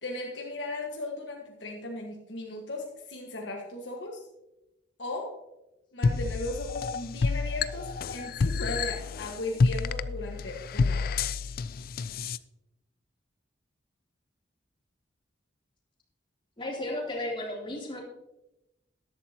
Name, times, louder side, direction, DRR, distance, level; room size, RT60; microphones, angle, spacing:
voice 1, 0.0-4.2 5.0-5.4 5.9-11.2, left 2 dB, 70° left, 0 dB, 1.5 m, -37 dB
sound 1, 6.0-12.4, left 4 dB, 55° left, 0.4 m, -29 dB
voice 2, 16.6-18.0, left 1 dB, 30° left, -3 dB, 3.2 m, -34 dB
13.5 x 11.5 x 2.9 m, 0.94 s
head